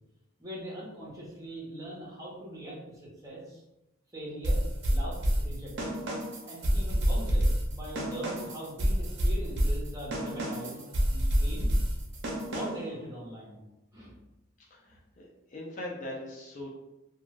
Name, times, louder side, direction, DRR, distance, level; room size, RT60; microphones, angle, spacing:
voice 1, 0.4-3.6 4.1-6.1 6.4-10.8 11.1-11.7 12.5-13.6 13.9-14.1, right 1 dB, 15° right, -6 dB, 0.8 m, -41 dB
sound 1, 4.4-12.9, equal, 55° right, 0.6 m, -28 dB
voice 2, 14.7-16.7, left 1 dB, 35° left, -3 dB, 0.4 m, -41 dB
2.4 x 2.3 x 3.1 m, 0.93 s
head